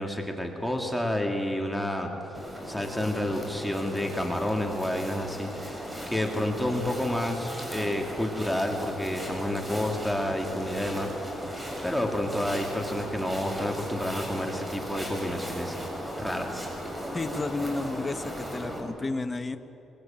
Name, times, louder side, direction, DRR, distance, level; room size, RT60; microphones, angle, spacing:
voice 1, 0.0-2.1 2.6-11.4 11.8-15.8 16.2-16.7, left 1 dB, ahead, 1 dB, 2.8 m, -30 dB
sound 1, 2.3-18.8, equal, 15° right, 7.3 m, -37 dB
voice 2, 17.1-19.6, left 3 dB, 25° left, 8 dB, 1.3 m, -32 dB
23.0 x 23.0 x 9.0 m, 2.9 s
cardioid pair, 90°, 0 cm